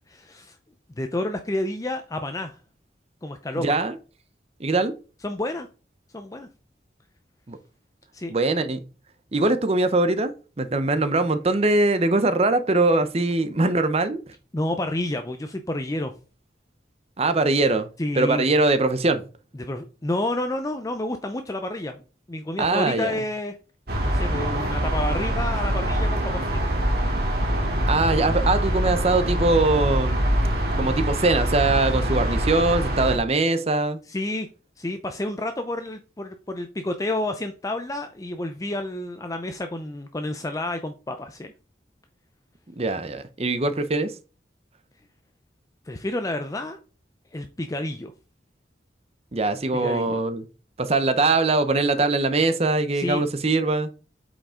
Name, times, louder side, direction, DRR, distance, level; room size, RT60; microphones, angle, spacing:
voice 1, 0.1-0.6 1.0-2.6 3.2-3.8 5.2-5.7 6.1-6.5 8.1-8.3 14.5-16.1 18.0-18.4 19.6-22.0 22.3-23.6 24.1-26.9 34.1-34.5 34.8-41.5 45.9-46.8 47.3-48.1 49.7-50.2 52.9-53.2, left 1 dB, 20° left, 0.5 m, -30 dB
voice 2, 3.6-3.9 4.6-4.9 7.5-7.6 8.3-8.8 9.3-10.3 10.6-14.2 17.2-17.9 18.1-19.2 22.6-23.1 27.9-30.3 30.8-34.0 42.8-44.1 49.3-50.4 50.8-53.9, right 2 dB, 35° right, 0.8 m, -22 dB
sound 1, 23.9-33.2, equal, 60° right, 2.1 m, -24 dB
8.3 x 5.1 x 3.7 m
head